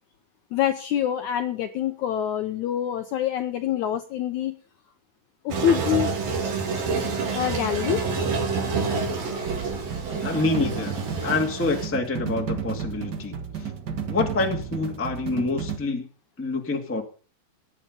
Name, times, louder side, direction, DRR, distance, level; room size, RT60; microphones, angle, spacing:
voice 1, 0.5-4.5 5.5-6.1 7.3-8.0, left 10 dB, 75° left, 7 dB, 1.8 m, -25 dB
Toilet flush, 5.5-11.9, right 4 dB, 70° right, 4.8 m, -28 dB
sound 1, 9.4-15.8, right 7 dB, 90° right, 0.9 m, -32 dB
voice 2, 10.2-11.0 11.2-13.7 14.1-16.1 16.4-17.0, left 3 dB, 5° left, 2 dB, 1.1 m, -27 dB
17.5 x 9.9 x 5.4 m, 0.40 s
omnidirectional pair, 4.3 m